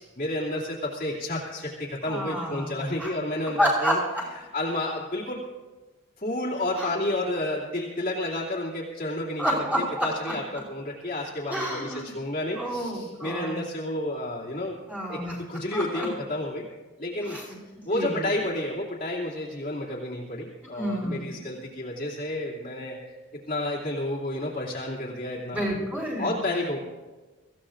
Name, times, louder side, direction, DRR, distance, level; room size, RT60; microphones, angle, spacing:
voice 1, 0.0-4.0 4.5-5.4 6.2-9.4 10.0-14.8 15.1-15.2 15.5-16.7 17.0-17.4 17.8-23.0 23.5-25.7 26.2-26.8, left 1 dB, 40° left, -6 dB, 2.5 m, -30 dB
voice 2, 2.0-2.7 3.0-3.1 3.6-4.0 6.8-6.9 9.4-10.3 11.5-12.1 12.6-13.6 14.9-15.4 15.7-16.1 17.3-17.6 17.9-18.2 20.7-21.4 25.5-26.3, equal, 5° right, -6 dB, 4.7 m, -29 dB
24.0 x 15.5 x 2.5 m, 1.3 s
head